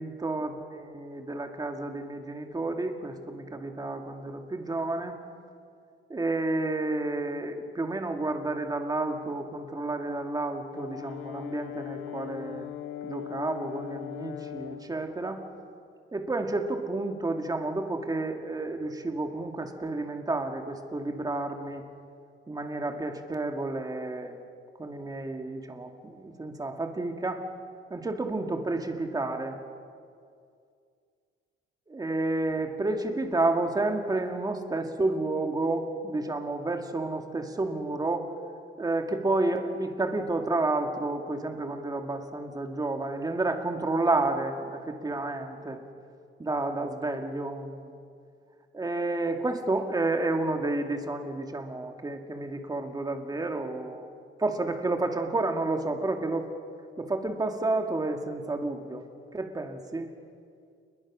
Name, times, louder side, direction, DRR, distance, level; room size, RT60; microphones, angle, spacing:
voice 1, 0.0-5.2 6.1-12.7 13.0-15.4 16.1-21.8 22.5-24.4 24.8-27.5 27.9-29.6 31.9-38.3 38.8-45.8 46.4-47.9 48.7-54.1 54.4-56.5 57.0-59.0 59.3-60.1, right 2 dB, 20° right, 5 dB, 2.2 m, -30 dB
Brass instrument, 10.7-14.9, left 12 dB, 75° left, 1.5 m, -39 dB
29.0 x 22.0 x 6.3 m, 2.3 s
cardioid pair, 140°, 21 cm